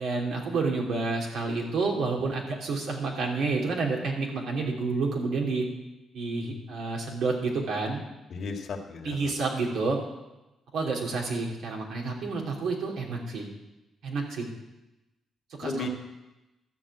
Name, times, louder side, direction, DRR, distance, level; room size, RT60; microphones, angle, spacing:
voice 1, 0.0-5.7 6.1-8.0 9.0-10.0 10.7-13.5 14.0-14.5 15.6-15.9, right 3 dB, 75° right, -1 dB, 2.8 m, -29 dB
voice 2, 8.3-9.3 15.6-15.9, left 3 dB, 60° left, 4 dB, 1.7 m, -34 dB
12.5 x 5.6 x 8.5 m, 1.0 s
cardioid pair, 90°, 0 cm